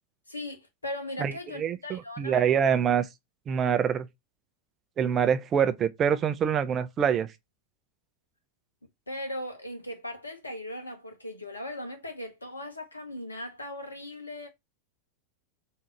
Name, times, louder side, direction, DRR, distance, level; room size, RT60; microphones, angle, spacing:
voice 1, 0.3-2.4 9.1-14.5, left 1 dB, 80° left, 0.8 m, -38 dB
voice 2, 1.2-3.1 3.5-4.1 5.0-7.3, right 8 dB, 25° right, 0.5 m, -25 dB
3.7 x 2.7 x 4.4 m
figure-of-eight pair, 90°, 0 cm